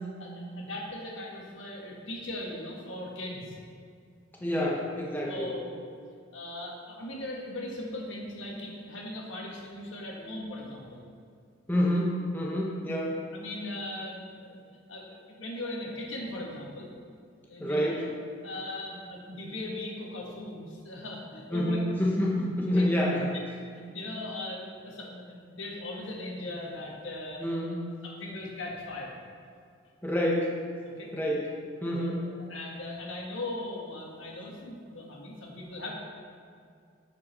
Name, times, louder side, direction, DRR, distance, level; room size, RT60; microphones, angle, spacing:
voice 1, 0.2-3.6 4.5-4.6 5.3-5.9 6.3-11.0 13.3-14.6 14.9-15.1 15.4-16.9 17.5-18.2 18.4-21.8 22.7-22.9 23.3-23.4 23.9-27.5 28.0-29.1 30.8-31.1 32.0-35.9, left 1 dB, 80° left, -2 dB, 1.7 m, -39 dB
voice 2, 4.4-5.5 11.7-13.2 17.6-18.0 21.5-23.3 27.4-27.9 30.0-30.5 31.1-31.5 31.8-32.3, equal, 10° left, -3 dB, 0.8 m, -28 dB
10.5 x 5.3 x 4.2 m, 2.3 s
head